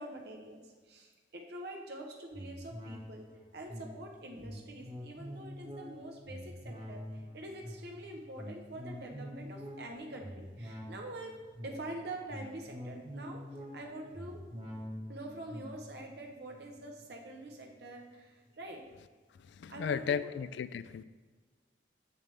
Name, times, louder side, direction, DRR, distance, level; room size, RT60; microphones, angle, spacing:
voice 1, 0.0-3.3 3.5-13.4 13.7-14.4 15.1-18.8 19.7-20.3, right 1 dB, 60° right, 1 dB, 1.0 m, -45 dB
sound 1, 2.3-18.1 18.5-18.6, equal, 30° right, 1.1 m, -46 dB
voice 2, 19.5-21.0, left 7 dB, 75° left, 15 dB, 0.3 m, -35 dB
7.0 x 6.8 x 3.4 m, 1.4 s
head